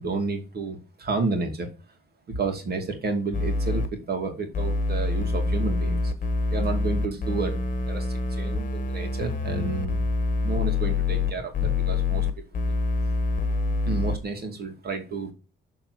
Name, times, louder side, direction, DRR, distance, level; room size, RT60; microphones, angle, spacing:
voice 1, 0.0-1.7 2.3-6.1 6.5-7.6 7.9-10.0 10.4-12.3 12.7-12.8 13.8-15.3, right 3 dB, 50° right, 5 dB, 2.4 m, -31 dB
sound 1, 3.3-3.9 4.5-14.2, left 3 dB, 45° left, 1.3 m, -26 dB
6.8 x 3.8 x 6.1 m, 0.32 s
cardioid pair, 90°, 20 cm